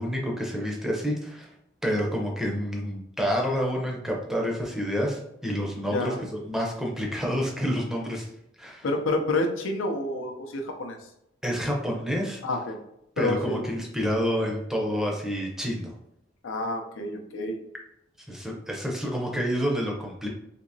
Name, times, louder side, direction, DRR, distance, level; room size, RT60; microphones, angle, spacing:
voice 1, 0.0-1.5 1.8-8.3 8.6-8.9 11.4-12.4 13.2-15.9 18.3-20.3, equal, 5° right, -1 dB, 0.5 m, -28 dB
voice 2, 5.9-6.2 8.8-11.0 12.4-12.8 13.2-13.6 16.4-17.6, left 2 dB, 90° left, 4 dB, 0.5 m, -28 dB
3.4 x 2.9 x 2.6 m, 0.80 s
head